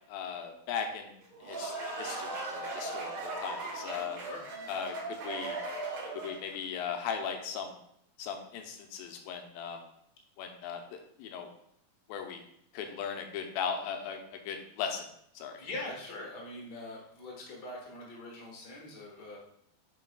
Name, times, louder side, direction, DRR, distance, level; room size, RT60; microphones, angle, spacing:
voice 1, 0.1-4.2 4.7-5.6 6.1-7.7 8.2-9.8 10.4-11.5 12.1-12.4 12.7-15.1 15.4-15.6, left 7 dB, 90° left, 4 dB, 2.5 m, -38 dB
sound 1, 1.2-6.5, right 3 dB, 55° right, 2.4 m, -38 dB
voice 2, 15.6-19.4, left 2 dB, 65° left, -3 dB, 1.0 m, -42 dB
9.3 x 4.7 x 2.3 m, 0.72 s
omnidirectional pair, 4.1 m